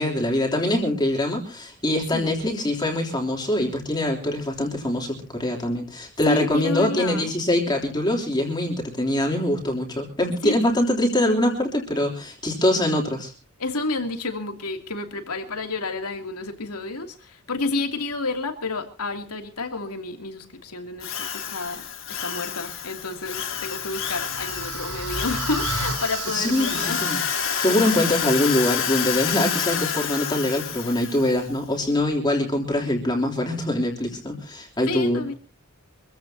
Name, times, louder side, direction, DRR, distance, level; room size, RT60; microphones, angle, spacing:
voice 1, 0.0-13.3 26.2-27.2 27.6-35.3, left 1 dB, 20° left, 3.3 m, -23 dB
voice 2, 6.3-7.3 10.4-10.6 13.6-27.0 34.9-35.3, left 3 dB, 90° left, 2.9 m, -30 dB
Drill, 21.0-31.4, left 8 dB, 60° left, 3.5 m, -29 dB
sound 1, 23.3-28.4, right 3 dB, 90° right, 4.2 m, -34 dB
25.5 x 15.5 x 2.8 m
head